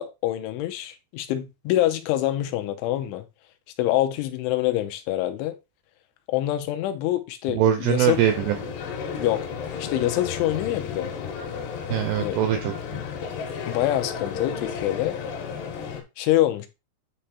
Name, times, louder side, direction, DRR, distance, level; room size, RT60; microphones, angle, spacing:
voice 1, 0.0-3.2 3.8-5.5 6.3-8.2 9.1-9.5 9.8-11.1 12.2-12.4 13.7-15.2 16.2-16.7, left 14 dB, 85° left, 3.1 m, -25 dB
voice 2, 7.5-8.7 11.9-13.0, right 10 dB, 85° right, 2.3 m, -23 dB
sound 1, 8.1-16.0, left 6 dB, 70° left, 3.2 m, -33 dB
9.7 x 3.4 x 4.3 m
omnidirectional pair, 5.5 m